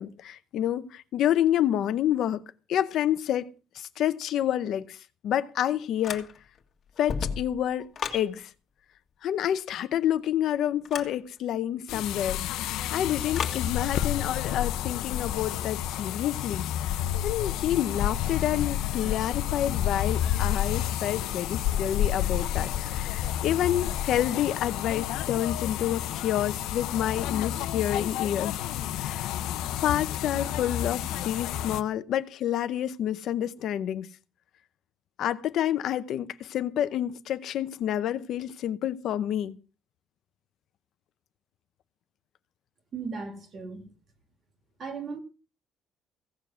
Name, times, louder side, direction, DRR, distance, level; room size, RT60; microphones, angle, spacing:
voice 1, 0.0-2.4 2.7-6.3 7.0-8.5 9.2-28.6 29.0-29.3 29.8-34.1 35.2-39.6, left 11 dB, 55° left, 0.7 m, -28 dB
sound 1, 6.0-6.6 6.9-8.3 10.8-11.2 13.3-13.7, left 6 dB, 35° left, 1.8 m, -33 dB
sound 2, 11.9-31.8, left 11 dB, 90° left, 0.7 m, -30 dB
voice 2, 42.9-43.9 44.8-45.2, right 4 dB, 35° right, 2.2 m, -36 dB
16.0 x 7.1 x 6.2 m
cardioid pair, 175°, 0 cm